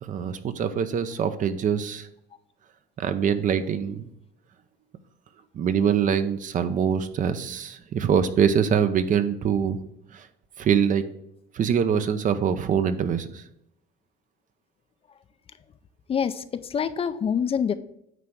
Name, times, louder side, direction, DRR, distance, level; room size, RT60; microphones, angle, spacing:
voice 1, 0.0-2.1 3.0-4.0 5.5-9.8 10.1-10.3 10.6-11.1 11.5-13.4, right 7 dB, 50° right, 11 dB, 0.7 m, -24 dB
voice 2, 16.1-17.7, left 7 dB, 35° left, 12 dB, 0.5 m, -26 dB
9.2 x 3.3 x 6.2 m, 0.78 s
cardioid pair, 110°, 17 cm